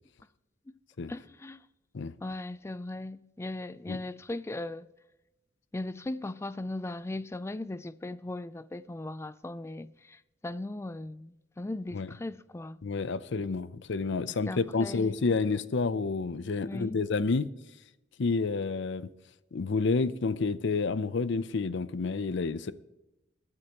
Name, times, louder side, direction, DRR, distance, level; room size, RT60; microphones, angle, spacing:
voice 1, 1.1-1.6 2.2-4.9 5.7-10.2 10.4-12.8 14.5-15.1 16.6-17.0, left 2 dB, 15° left, 0.3 m, -38 dB
voice 2, 12.8-17.5 18.2-19.1 19.5-22.7, left 4 dB, 65° left, 0.6 m, -29 dB
22.0 x 9.7 x 3.0 m
head